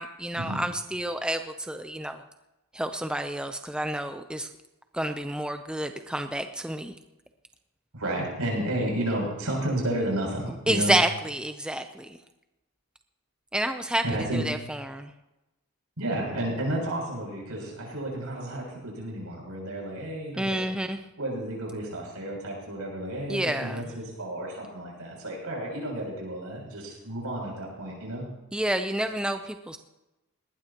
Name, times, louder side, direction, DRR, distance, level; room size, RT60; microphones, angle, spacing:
voice 1, 0.0-2.2 2.7-4.5 4.9-6.9 10.7-12.2 13.5-14.0 14.3-15.1 20.4-21.0 23.3-23.8 28.5-29.8, right 1 dB, 5° right, 7 dB, 0.6 m, -29 dB
voice 2, 7.9-10.9 14.0-14.4 16.0-20.6 21.2-28.2, right 1 dB, 85° right, -2 dB, 7.4 m, -32 dB
19.5 x 19.0 x 3.0 m, 0.97 s
head